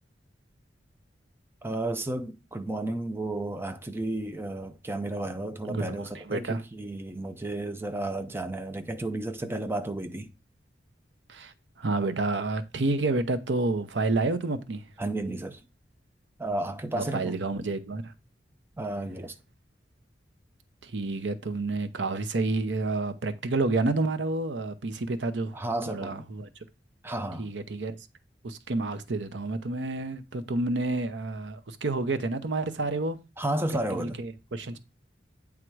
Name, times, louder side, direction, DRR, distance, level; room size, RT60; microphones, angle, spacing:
voice 1, 1.6-10.3 15.0-15.6 16.4-17.4 18.8-19.3 25.5-26.2 27.0-27.5 33.4-34.2, right 1 dB, 15° right, 0.6 m, -32 dB
voice 2, 5.7-6.6 11.3-11.5 11.8-14.8 16.9-18.1 20.8-25.6 25.9-26.5 27.4-28.0 28.4-33.2 33.7-34.8, right 2 dB, 75° right, 0.8 m, -29 dB
8.9 x 3.7 x 4.6 m
head